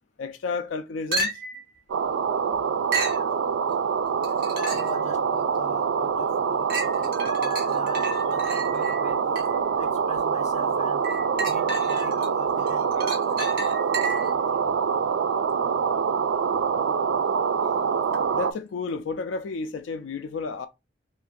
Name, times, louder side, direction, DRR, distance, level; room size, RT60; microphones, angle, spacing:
voice 1, 0.2-1.3 16.5-16.7 18.3-20.7, left 4 dB, 90° left, 0.4 m, -31 dB
sound 1, 1.1-1.7 2.9-3.3 4.2-5.0 5.6-5.7 6.7-9.7 11.0-12.3 12.7-14.4 18.1-18.2, right 2 dB, 55° right, 1.3 m, -32 dB
sound 2, 1.9-18.5, right 6 dB, 80° right, 0.4 m, -25 dB
voice 2, 4.5-9.4 9.8-11.0 11.4-13.3, left 2 dB, 40° left, 0.8 m, -42 dB
2.7 x 2.5 x 3.6 m
head